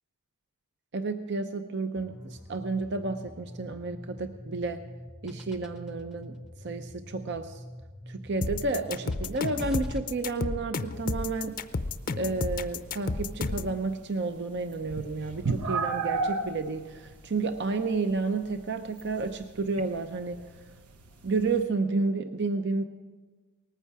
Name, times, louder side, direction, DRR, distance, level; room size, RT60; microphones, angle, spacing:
voice 1, 0.9-4.8 5.2-6.4 6.6-7.6 8.1-11.6 12.1-20.4 21.2-22.8, right 3 dB, 50° right, 8 dB, 0.6 m, -31 dB
sound 1, 1.9-10.0, equal, 5° right, 0.7 m, -44 dB
sound 2, 8.4-13.7, left 3 dB, 40° left, 0.5 m, -31 dB
sound 3, 10.9-21.6, right 4 dB, 90° right, 1.1 m, -37 dB
19.0 x 14.5 x 4.8 m, 1.3 s
head